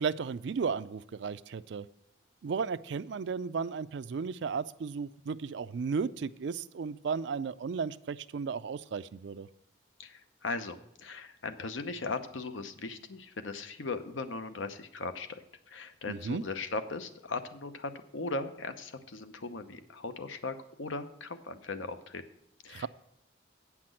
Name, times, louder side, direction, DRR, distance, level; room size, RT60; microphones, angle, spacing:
voice 1, 0.0-1.9 2.4-9.5 16.1-16.4 22.7-22.9, right 5 dB, 65° right, 15 dB, 0.4 m, -34 dB
voice 2, 10.0-22.2 22.6-22.9, left 3 dB, 75° left, 10 dB, 0.8 m, -38 dB
9.1 x 5.9 x 7.6 m, 0.77 s
head